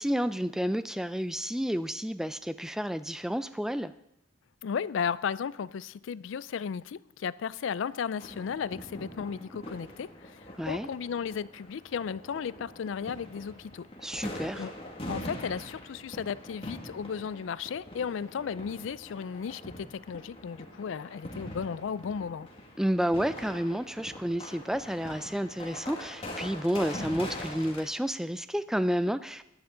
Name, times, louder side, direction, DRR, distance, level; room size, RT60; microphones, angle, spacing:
voice 1, 0.0-3.9 10.6-10.9 14.0-14.6 22.8-29.4, equal, 5° right, 0.4 m, -30 dB
voice 2, 4.6-13.9 14.6-14.7 15.1-22.5, left 6 dB, 70° left, 0.4 m, -35 dB
sound 1, 8.2-27.8, left 1 dB, 30° left, 2.0 m, -43 dB
15.0 x 11.0 x 3.9 m
head